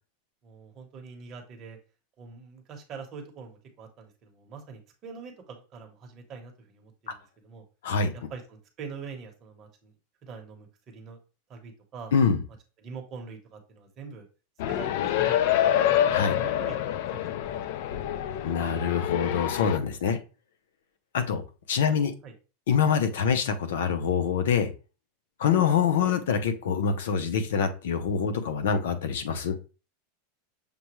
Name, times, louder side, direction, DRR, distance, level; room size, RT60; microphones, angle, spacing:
voice 1, 0.4-1.8 2.2-7.6 8.1-9.9 10.2-11.2 11.5-12.1 12.8-14.3 14.7-16.0 16.3-18.6 21.9-22.3, right 5 dB, 30° right, 2 dB, 1.0 m, -44 dB
voice 2, 12.1-12.4 16.1-16.3 18.4-20.2 21.1-21.4 21.7-22.1 22.7-24.7 25.4-29.6, left 6 dB, 90° left, 9 dB, 0.7 m, -25 dB
sound 1, 14.6-19.8, left 11 dB, 55° left, 0.3 m, -26 dB
6.7 x 2.3 x 3.0 m, 0.33 s
supercardioid pair, 160°, 0 cm